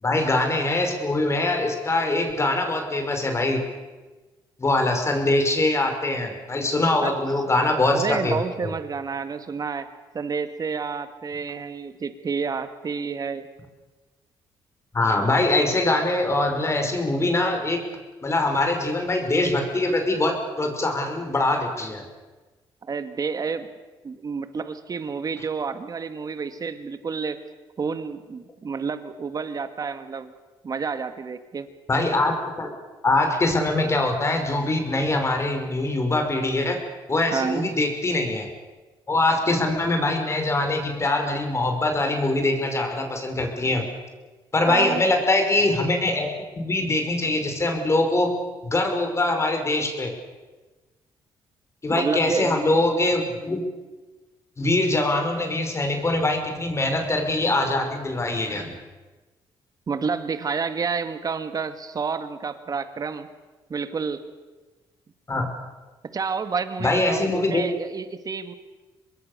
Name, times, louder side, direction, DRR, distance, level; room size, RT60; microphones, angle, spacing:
voice 1, 0.0-3.6 4.6-8.7 14.9-17.8 18.2-22.0 31.9-32.7 33.0-36.8 37.1-38.5 39.1-43.9 44.5-48.3 48.6-50.1 51.8-53.6 54.6-58.8 65.3-65.5 66.8-67.7, left 2 dB, 30° left, 4 dB, 5.5 m, -23 dB
voice 2, 7.9-9.9 10.1-13.5 22.8-23.7 24.0-27.4 27.8-30.3 30.6-31.7 37.3-37.7 44.7-45.1 51.9-52.7 59.9-63.3 63.7-64.2 66.1-68.5, right 5 dB, 40° right, 10 dB, 2.1 m, -29 dB
25.5 x 21.0 x 7.0 m, 1.2 s
cardioid pair, 80°, 9 cm